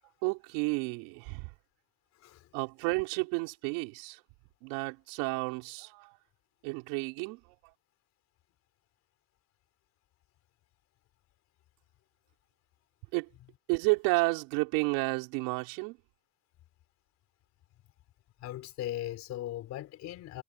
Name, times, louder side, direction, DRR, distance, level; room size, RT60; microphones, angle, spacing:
voice 1, 0.2-1.5 2.5-4.2 4.6-6.2 6.6-7.6 13.1-13.3 13.7-16.0, right 28 dB, 70° right, 5.7 m, -31 dB
voice 2, 18.4-20.4, left 13 dB, 40° left, 4.4 m, -38 dB
cardioid pair, 170°, 40 cm